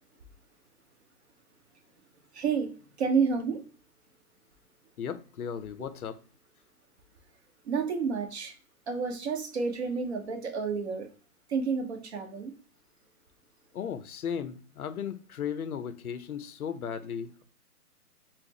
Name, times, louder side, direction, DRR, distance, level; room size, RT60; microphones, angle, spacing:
voice 1, 2.3-2.7 3.0-3.6 7.6-8.5 8.9-11.1 11.5-12.5, right 5 dB, 45° right, 0.8 m, -29 dB
voice 2, 5.0-6.2 13.7-17.4, left 8 dB, 70° left, 0.6 m, -36 dB
4.1 x 2.0 x 2.9 m
figure-of-eight pair, 135°, 46 cm